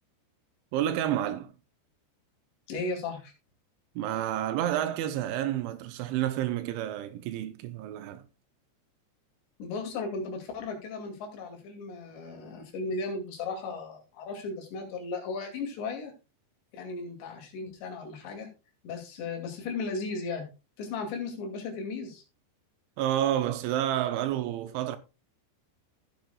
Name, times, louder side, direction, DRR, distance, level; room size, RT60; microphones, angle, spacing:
voice 1, 0.7-1.5 4.0-8.2 23.0-25.0, right 12 dB, 80° right, 3.0 m, -29 dB
voice 2, 2.7-3.3 9.6-16.1 16.7-18.5 18.8-20.5 20.8-22.2, left 3 dB, 70° left, 4.7 m, -36 dB
16.0 x 7.8 x 2.3 m
omnidirectional pair, 5.4 m